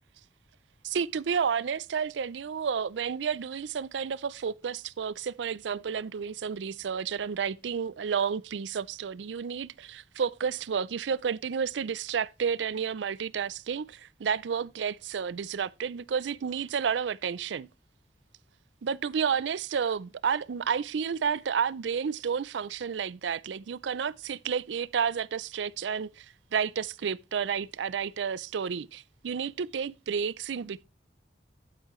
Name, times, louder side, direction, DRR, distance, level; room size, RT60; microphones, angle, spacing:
voice 1, 0.8-17.7 18.8-30.8, right 6 dB, 85° right, 0.4 m, -31 dB
11.5 x 8.3 x 3.1 m
head